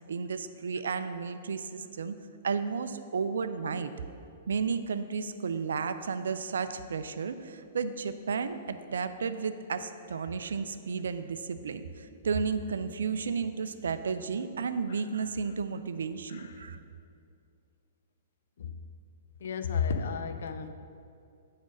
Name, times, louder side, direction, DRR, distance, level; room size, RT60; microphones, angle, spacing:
voice 1, 0.0-2.2 2.4-3.9 4.5-16.8, right 5 dB, 60° right, 11 dB, 0.4 m, -33 dB
voice 2, 16.3-16.7 18.6-18.8 19.4-20.7, left 6 dB, 55° left, 9 dB, 0.5 m, -34 dB
8.2 x 5.1 x 6.0 m, 2.5 s
figure-of-eight pair, 110°, 0 cm